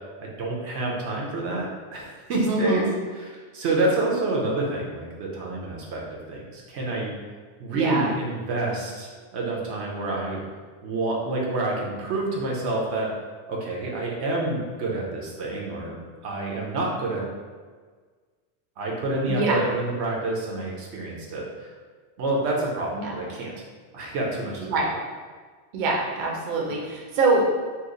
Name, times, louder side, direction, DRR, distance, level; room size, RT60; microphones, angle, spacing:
voice 1, 0.2-2.9 3.1-6.0 6.3-7.1 7.6-10.4 10.8-13.1 13.5-16.0 16.2-17.2 18.8-21.7 22.2-23.5 23.9-24.9, right 2 dB, 85° right, -3 dB, 1.0 m, -28 dB
voice 2, 2.5-2.9 7.7-8.1 19.3-19.6 22.9-23.2 24.6-24.9 25.7-27.5, right 3 dB, 55° right, -2 dB, 0.7 m, -24 dB
2.9 x 2.3 x 3.7 m, 1.5 s
omnidirectional pair, 1.1 m